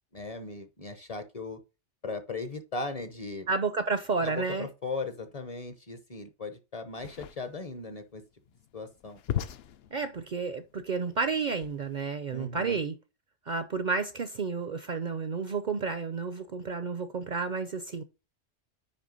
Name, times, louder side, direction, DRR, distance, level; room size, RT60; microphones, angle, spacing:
voice 1, 0.1-1.6 2.0-3.5 4.2-8.2 8.7-9.2 12.3-12.8, left 3 dB, 35° left, 0.8 m, -38 dB
voice 2, 3.5-4.7 9.9-13.0 13.5-18.0, right 4 dB, 50° right, 0.6 m, -31 dB
sound 1, 6.9-12.1, left 10 dB, 65° left, 0.8 m, -39 dB
9.8 x 3.3 x 5.3 m
omnidirectional pair, 1.2 m